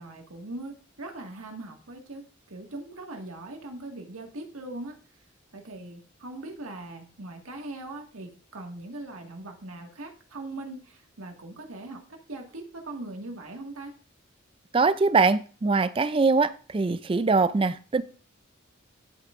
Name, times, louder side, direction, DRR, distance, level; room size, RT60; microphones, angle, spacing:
voice 1, 0.0-5.0 5.5-14.0, right 2 dB, 90° right, 1.8 m, -40 dB
voice 2, 14.7-18.0, right 4 dB, 25° right, 0.3 m, -23 dB
10.5 x 7.9 x 2.5 m
head